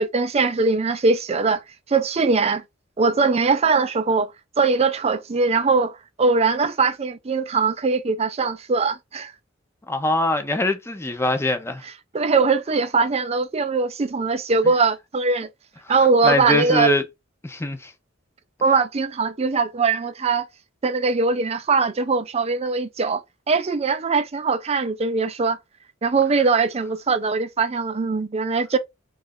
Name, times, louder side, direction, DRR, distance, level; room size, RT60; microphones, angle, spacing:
voice 1, 0.0-1.6 1.9-2.6 3.0-4.3 4.6-9.3 12.1-15.5 15.9-16.9 18.6-20.5 20.8-23.2 23.5-25.6 26.0-28.8, right 4 dB, 30° right, 0.5 m, -21 dB
voice 2, 9.9-11.8 16.2-17.0 17.4-17.9, left 1 dB, 15° left, 0.6 m, -22 dB
3.3 x 2.4 x 3.6 m
head